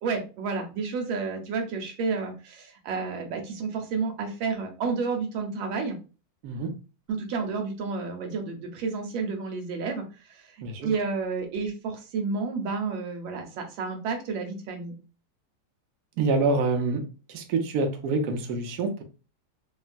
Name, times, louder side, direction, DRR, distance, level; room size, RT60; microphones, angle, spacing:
voice 1, 0.0-6.0 7.1-10.0 10.3-14.9, right 4 dB, 85° right, 3 dB, 1.5 m, -31 dB
voice 2, 16.2-17.0 17.3-19.0, right 3 dB, 70° right, 4 dB, 1.0 m, -26 dB
3.1 x 2.3 x 2.4 m, 0.33 s
omnidirectional pair, 2.1 m